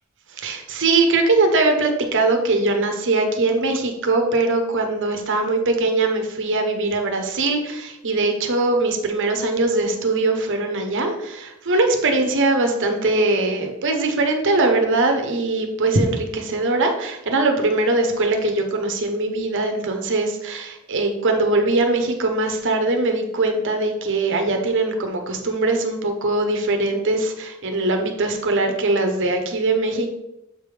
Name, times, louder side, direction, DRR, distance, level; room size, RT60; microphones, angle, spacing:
voice 1, 0.3-30.1, right 2 dB, 60° right, 5 dB, 1.0 m, -21 dB
7.3 x 4.9 x 3.5 m, 0.89 s
head